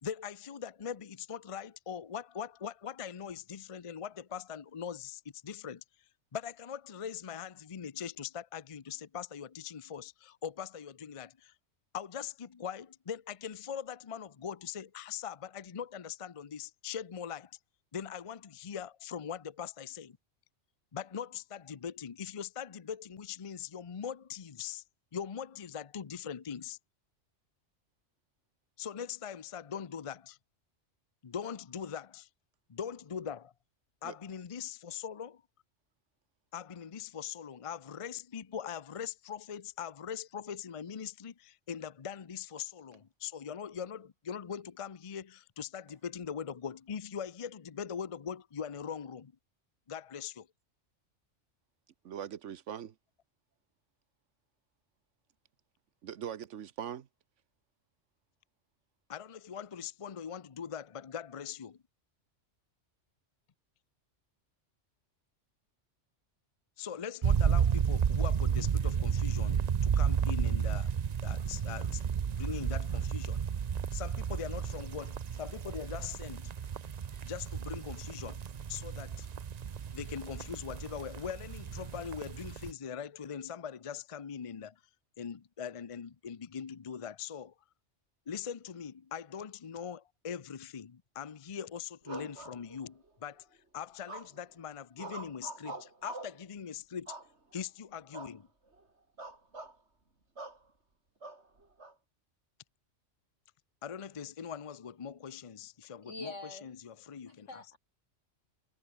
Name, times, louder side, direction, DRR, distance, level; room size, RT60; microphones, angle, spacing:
voice 1, 0.0-5.8 6.3-11.5 11.9-17.6 17.9-20.2 20.9-24.8 25.1-26.8 28.8-30.4 31.2-32.3 32.7-33.5 34.0-35.4 36.5-49.3 49.9-50.5 59.1-61.8 66.8-70.9 71.2-73.4 73.9-76.5 77.2-78.4 78.7-79.3 79.9-84.8 85.2-87.5 88.3-93.5 93.7-97.2 97.5-98.5 103.8-106.3 106.6-107.6, left 7 dB, 35° left, 0.6 m, -41 dB
voice 2, 52.0-52.9 56.0-57.1, right 9 dB, 85° right, 1.2 m, -41 dB
sound 1, 67.2-82.7, right 7 dB, 45° right, 0.6 m, -32 dB
sound 2, 92.1-93.1 94.1-94.5 95.0-96.4 97.1-97.7 98.1-98.4 98.7-98.8 99.2-99.8 100.4-100.6 101.2-101.9, right 2 dB, 65° right, 4.2 m, -45 dB
voice 3, 106.0-106.7 107.3-107.8, left 2 dB, 80° left, 5.0 m, -44 dB
omnidirectional pair, 1.2 m